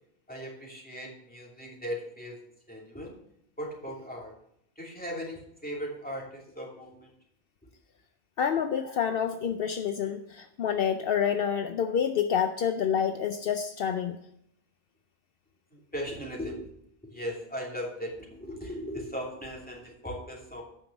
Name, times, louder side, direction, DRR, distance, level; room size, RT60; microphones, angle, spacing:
voice 1, 0.3-2.4 2.7-3.2 3.6-4.3 4.8-7.1 8.8-9.0 15.7-16.6 17.0-20.6, equal, 10° left, -3 dB, 2.7 m, -38 dB
voice 2, 8.4-14.2, left 8 dB, 65° left, 8 dB, 0.8 m, -28 dB
9.1 x 5.7 x 7.0 m, 0.74 s
omnidirectional pair, 1.1 m